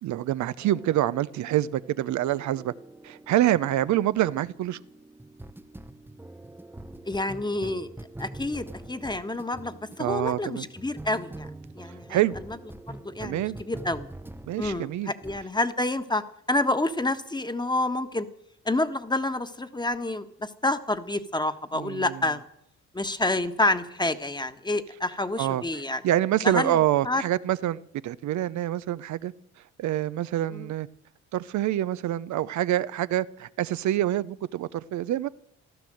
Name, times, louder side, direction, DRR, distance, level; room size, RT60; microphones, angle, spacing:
voice 1, 0.0-2.7 3.0-4.8 10.0-10.6 12.1-12.4 13.2-13.6 14.5-15.1 21.7-22.2 25.4-25.6 26.0-29.3 29.8-30.9 31.3-35.3, right 13 dB, 65° right, 0.6 m, -26 dB
sound 1, 0.6-14.9 15.2-15.5, right 2 dB, 5° right, 0.8 m, -44 dB
voice 2, 7.0-7.9 8.2-11.5 11.7-12.2 12.9-14.1 14.6-18.3 18.6-22.4 22.9-26.0 26.4-26.8 27.0-27.2 30.5-30.7, left 2 dB, 15° left, 1.4 m, -28 dB
15.0 x 12.5 x 7.7 m
supercardioid pair, 70°, 31 cm